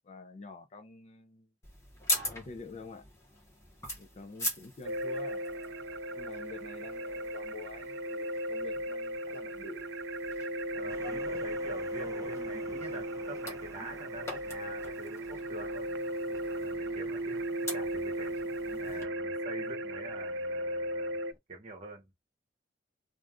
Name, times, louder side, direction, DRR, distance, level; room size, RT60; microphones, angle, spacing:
voice 1, 0.0-1.5 2.3-3.0 4.0-5.5 6.1-9.9, left 3 dB, 35° left, 0.4 m, -48 dB
sound 1, 1.6-19.0, left 1 dB, 15° left, 0.9 m, -43 dB
sound 2, 4.8-21.3, right 1 dB, 80° right, 0.4 m, -36 dB
voice 2, 10.7-18.3 18.8-21.2 21.5-22.1, right 2 dB, 35° right, 0.9 m, -46 dB
sound 3, 10.9-21.4, right 2 dB, 20° right, 0.5 m, -55 dB
2.5 x 2.3 x 3.4 m
head